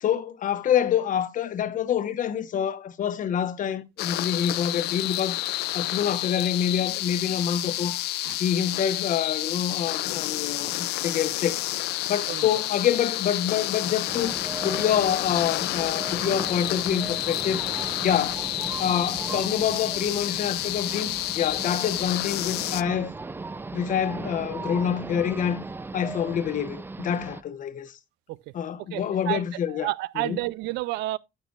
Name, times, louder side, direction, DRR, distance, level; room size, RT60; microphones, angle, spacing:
voice 1, 0.0-5.4 5.7-8.0 8.4-17.6 18.0-18.4 18.8-23.1 23.7-25.6 25.9-27.9 28.5-29.9 30.2-30.4, left 9 dB, 50° left, 1.1 m, -27 dB
sound 1, 4.0-22.8, left 17 dB, 80° left, 0.5 m, -30 dB
voice 2, 10.3-10.7 12.3-12.5 28.3-28.5 28.9-31.2, right 18 dB, 90° right, 0.5 m, -31 dB
sound 2, 14.1-27.4, right 3 dB, 15° right, 0.4 m, -37 dB
9.4 x 8.3 x 2.4 m
cardioid pair, 110°, 17 cm